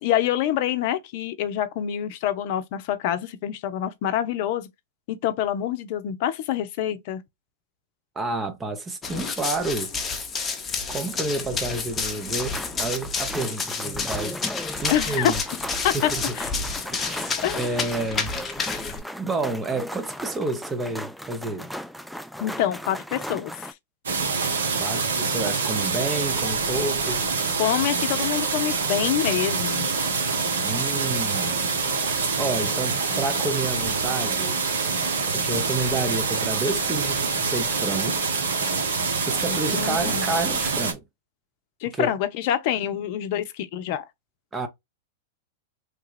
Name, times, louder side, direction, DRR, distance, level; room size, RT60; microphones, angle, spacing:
voice 1, 0.0-4.7 5.1-7.2 14.9-15.3 15.8-16.1 16.4-16.5 17.4-17.6 22.4-23.7 27.6-29.9 39.5-40.2 41.8-44.1, left 11 dB, 55° left, 0.5 m, -26 dB
voice 2, 8.2-9.9 10.9-14.4 14.8-15.4 15.9-16.2 16.9-18.3 19.2-21.7 24.7-27.2 30.6-31.7 32.4-34.6 35.3-38.2 39.2-41.0 42.0-42.1 44.5-44.7, right 3 dB, 20° right, 0.8 m, -30 dB
Run, 9.0-19.0, left 4 dB, 20° left, 0.8 m, -30 dB
sound 1, 12.3-23.7, equal, ahead, 0.3 m, -37 dB
sound 2, 24.1-40.9, right 4 dB, 75° right, 1.0 m, -25 dB
3.3 x 2.3 x 3.2 m
hypercardioid pair, 100°, 0 cm